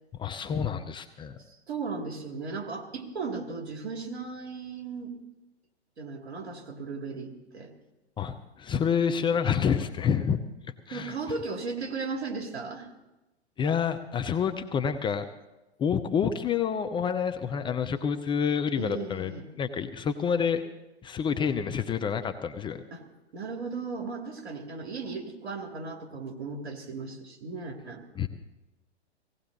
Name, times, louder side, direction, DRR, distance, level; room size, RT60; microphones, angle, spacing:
voice 1, 0.2-1.4 8.2-10.4 10.9-11.1 13.6-15.2 15.8-19.3 19.6-20.6 21.0-22.8 28.2-28.3, left 7 dB, 15° left, 8 dB, 0.6 m, -28 dB
voice 2, 1.7-5.1 6.0-7.7 10.9-12.9 18.8-19.5 22.9-23.0 23.3-28.0, right 4 dB, 75° right, 3 dB, 2.7 m, -36 dB
17.5 x 17.0 x 4.0 m, 1.0 s
hypercardioid pair, 110°, 33 cm